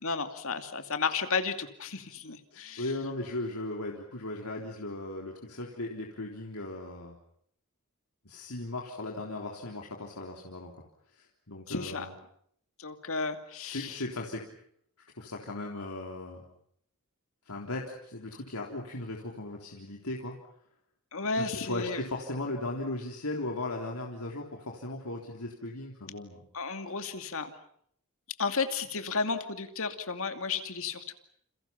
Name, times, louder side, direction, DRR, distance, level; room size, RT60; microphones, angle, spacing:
voice 1, 0.0-2.9 11.7-12.1 12.8-14.0 21.1-22.0 26.5-27.5 28.4-31.1, left 4 dB, 65° left, 7 dB, 2.6 m, -33 dB
voice 2, 2.5-7.2 8.3-10.7 11.5-12.1 13.7-14.5 15.2-16.4 17.5-20.3 21.4-26.4, left 2 dB, 85° left, 0 dB, 3.7 m, -37 dB
29.5 x 29.0 x 5.9 m, 0.67 s
head